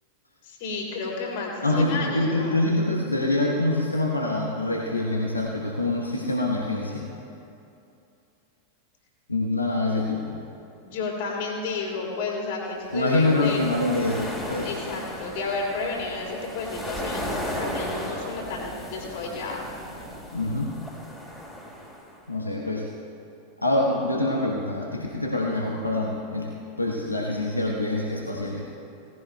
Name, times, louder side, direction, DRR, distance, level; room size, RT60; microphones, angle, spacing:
voice 1, 0.4-2.6 10.8-13.6 14.6-19.7, left 3 dB, 50° left, -2 dB, 3.1 m, -31 dB
voice 2, 1.6-7.1 9.3-10.4 12.9-14.7 20.3-20.8 22.3-22.9 23.6-26.5 26.8-28.7, left 2 dB, 85° left, -1 dB, 1.0 m, -25 dB
sound 1, 12.9-22.2, equal, 10° left, 2.2 m, -36 dB
18.0 x 15.5 x 2.2 m, 2.7 s
figure-of-eight pair, 90°, 0 cm